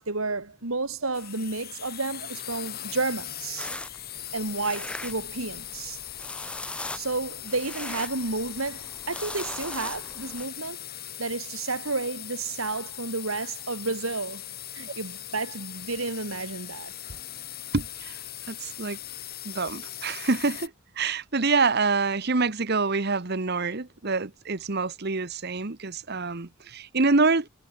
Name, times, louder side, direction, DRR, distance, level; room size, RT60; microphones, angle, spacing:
voice 1, 0.0-3.7 4.3-6.0 6.9-10.9 11.2-14.4 14.7-17.2, right 3 dB, 85° right, 3.3 m, -31 dB
sound 1, 1.1-20.7, left 12 dB, 50° left, 6.3 m, -40 dB
sound 2, 3.6-10.5, left 1 dB, 5° left, 2.6 m, -40 dB
voice 2, 17.7-18.2 18.5-19.0 19.4-20.7 21.0-27.5, right 4 dB, 50° right, 1.2 m, -26 dB
head